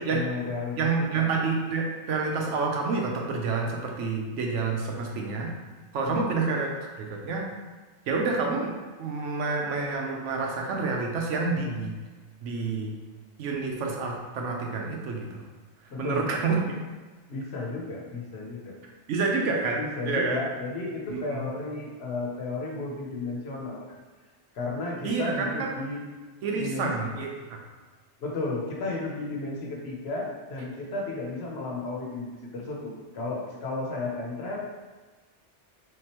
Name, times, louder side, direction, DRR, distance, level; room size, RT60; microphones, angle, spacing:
voice 1, 0.0-0.9 1.1-1.3 6.0-6.3 15.9-16.3 17.3-18.8 19.5-24.0 24.5-26.0 26.6-27.1 28.2-34.6, left 3 dB, 65° left, -2 dB, 0.9 m, -33 dB
voice 2, 0.8-5.5 5.9-6.7 7.0-7.5 8.1-8.7 9.0-12.0 12.4-12.9 13.4-15.4 16.0-16.8 19.1-20.4 21.1-21.5 25.0-25.7 26.4-27.6, right 4 dB, 85° right, 0 dB, 1.0 m, -28 dB
3.6 x 2.9 x 2.9 m, 1.3 s
omnidirectional pair, 1.2 m